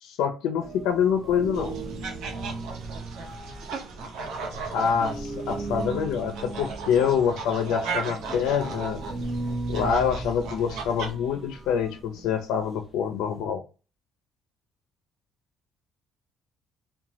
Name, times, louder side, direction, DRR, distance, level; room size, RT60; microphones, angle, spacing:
voice 1, 0.0-1.8 4.7-9.0 9.7-13.6, left 7 dB, 90° left, 6 dB, 0.4 m, -26 dB
sound 1, 0.6-13.4, right 3 dB, 30° right, 0.5 m, -37 dB
sound 2, 1.5-11.1, right 4 dB, 75° right, 0.7 m, -37 dB
2.7 x 2.1 x 2.9 m, 0.32 s
cardioid pair, 150°, 0 cm